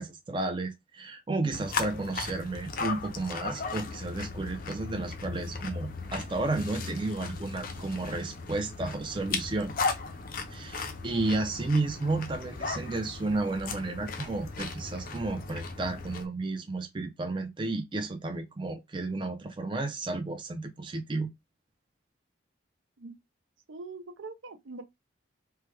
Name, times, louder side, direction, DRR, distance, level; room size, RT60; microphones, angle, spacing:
voice 1, 0.0-9.7 10.5-21.3, right 2 dB, 25° right, 0.4 m, -32 dB
sound 1, 1.5-16.2, left 4 dB, 45° left, 0.5 m, -37 dB
voice 2, 23.7-24.8, right 3 dB, 80° right, 0.6 m, -42 dB
3.1 x 2.1 x 3.2 m
head